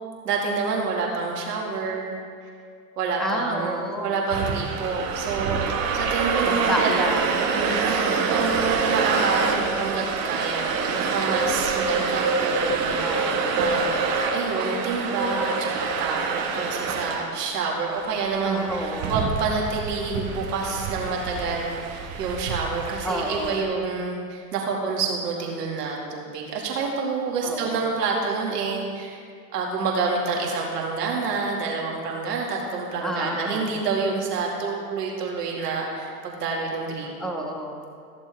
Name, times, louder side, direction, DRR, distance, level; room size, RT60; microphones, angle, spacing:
voice 1, 0.2-2.1 3.0-5.6 5.9-6.9 7.5-13.3 13.5-13.9 14.3-29.2 29.5-37.4, right 4 dB, 80° right, -2 dB, 2.5 m, -28 dB
voice 2, 3.2-4.3 6.4-7.5 8.4-8.9 13.0-13.6 18.4-19.2 23.0-23.7 27.4-27.9 33.0-33.7 37.2-37.9, equal, ahead, 1 dB, 1.5 m, -30 dB
sound 1, 4.3-23.6, right 5 dB, 60° right, 1.8 m, -26 dB
14.5 x 7.2 x 4.7 m, 2.2 s
hypercardioid pair, 100°, 47 cm